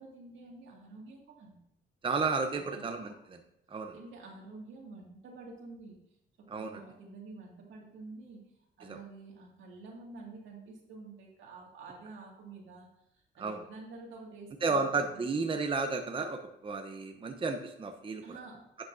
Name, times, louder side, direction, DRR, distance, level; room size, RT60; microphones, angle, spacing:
voice 1, 0.0-1.6 2.5-3.2 3.9-6.0 6.5-8.4 8.8-12.9 13.1-15.4 18.2-18.6, right 3 dB, 75° right, -1 dB, 2.1 m, -49 dB
voice 2, 2.0-3.4 3.7-3.9 6.5-6.8 8.9-9.0 13.4-13.6 14.6-18.4, right 4 dB, 25° right, 5 dB, 0.7 m, -32 dB
10.5 x 6.1 x 2.6 m, 0.78 s
cardioid pair, 90°, 20 cm